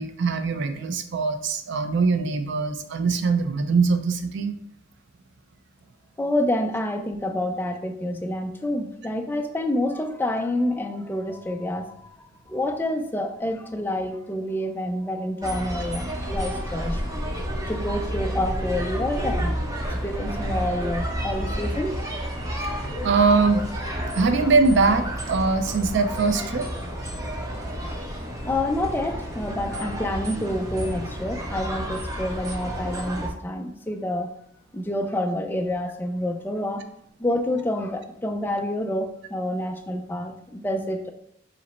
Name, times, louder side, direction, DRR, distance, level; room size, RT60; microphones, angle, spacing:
voice 1, 0.0-4.5 23.0-23.6 24.2-26.7, right 4 dB, 60° right, 8 dB, 0.4 m, -22 dB
voice 2, 6.2-17.0 17.7-19.6 20.0-22.0 28.4-34.3 34.7-36.8 37.2-41.1, left 1 dB, 10° left, 5 dB, 0.3 m, -28 dB
sound 1, 15.4-33.3, equal, 15° right, 0.7 m, -30 dB
5.0 x 2.0 x 4.2 m, 0.71 s
head